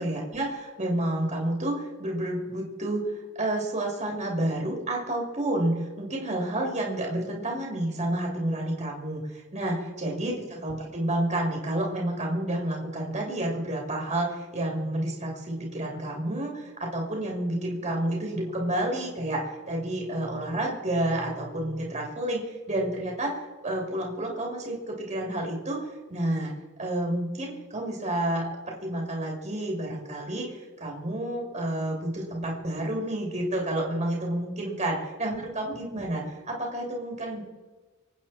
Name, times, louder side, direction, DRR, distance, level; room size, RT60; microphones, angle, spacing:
voice 1, 0.0-26.5 26.8-37.4, right 1 dB, 30° right, -1 dB, 2.9 m, -30 dB
26.0 x 9.1 x 4.3 m, 1.3 s
head